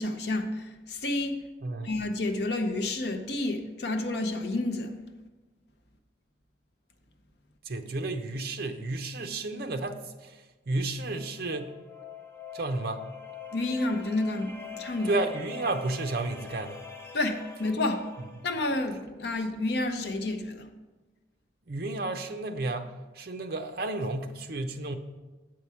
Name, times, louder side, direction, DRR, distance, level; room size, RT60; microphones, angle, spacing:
voice 1, 0.0-1.3 1.8-4.9 13.5-15.1 17.1-18.0 18.4-20.7, left 2 dB, 60° left, 6 dB, 0.7 m, -30 dB
voice 2, 7.6-11.7 12.5-13.1 15.0-16.8 21.7-24.9, right 2 dB, 50° right, 6 dB, 0.6 m, -32 dB
sound 1, 11.0-18.8, left 6 dB, 10° left, 0.5 m, -44 dB
7.9 x 4.7 x 5.6 m, 1.2 s
head